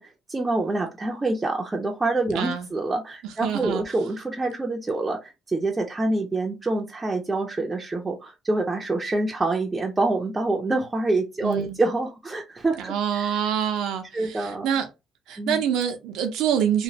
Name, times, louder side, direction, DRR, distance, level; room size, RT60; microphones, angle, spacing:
voice 1, 0.0-13.4 14.1-14.7 15.4-15.6, right 2 dB, 20° right, 0.5 m, -26 dB
voice 2, 2.3-2.7 3.2-3.8 11.4-11.8 12.8-14.9 15.3-16.8, right 8 dB, 85° right, 0.6 m, -26 dB
3.0 x 2.1 x 2.7 m
cardioid pair, 110°, 0 cm